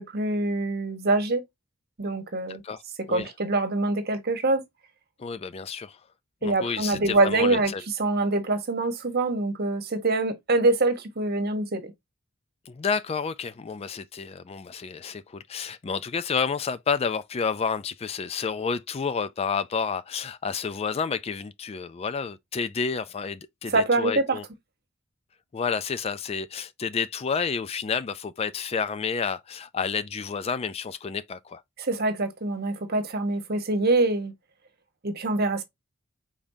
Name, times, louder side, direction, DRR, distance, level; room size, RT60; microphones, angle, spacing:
voice 1, 0.0-1.4 2.0-2.6 3.1-4.6 6.4-7.7 8.0-11.9 23.7-24.4 31.8-34.3 35.0-35.6, right 2 dB, 50° right, 1.2 m, -25 dB
voice 2, 2.5-2.8 3.1-3.3 5.2-6.0 6.4-7.8 12.7-24.4 25.5-31.6, left 5 dB, 30° left, 0.3 m, -30 dB
5.2 x 3.6 x 2.6 m
head